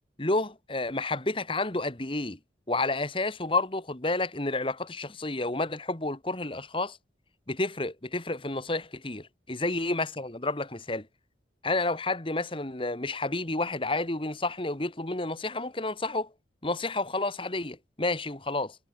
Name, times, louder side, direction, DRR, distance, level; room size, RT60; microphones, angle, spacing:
voice 1, 0.2-2.4 2.7-7.0 7.5-11.1 11.6-16.3 16.6-18.8, left 2 dB, 30° left, 1.8 m, -30 dB
head